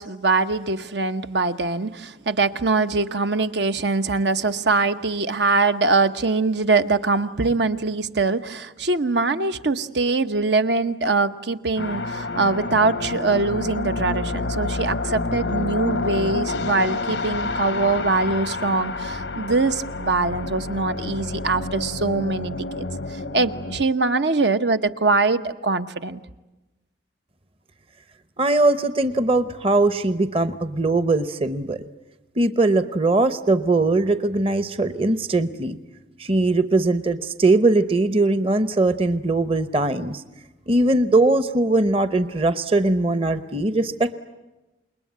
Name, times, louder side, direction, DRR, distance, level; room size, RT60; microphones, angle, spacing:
voice 1, 0.0-22.9 23.3-26.2, right 3 dB, 75° right, 9 dB, 1.0 m, -23 dB
sound 1, 11.8-23.8, left 3 dB, 80° left, 0.9 m, -28 dB
voice 2, 28.4-31.8 32.4-35.8 36.2-40.2 40.7-44.1, right 2 dB, 30° right, 12 dB, 0.9 m, -20 dB
27.5 x 21.5 x 9.5 m, 1.1 s
head